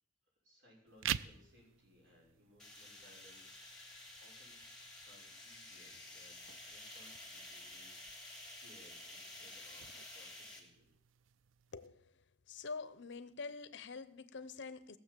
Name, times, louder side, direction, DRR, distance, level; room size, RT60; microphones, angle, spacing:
voice 1, 0.4-4.6 5.0-10.9, left 1 dB, 65° right, 6.0 m, -65 dB
sound 1, 0.9-11.9, right 10 dB, 80° right, 0.5 m, -49 dB
sound 2, 2.6-10.6, left 2 dB, 5° left, 3.1 m, -52 dB
voice 2, 11.7-12.1 12.5-15.0, left 4 dB, 65° left, 0.8 m, -46 dB
17.5 x 7.2 x 7.6 m
head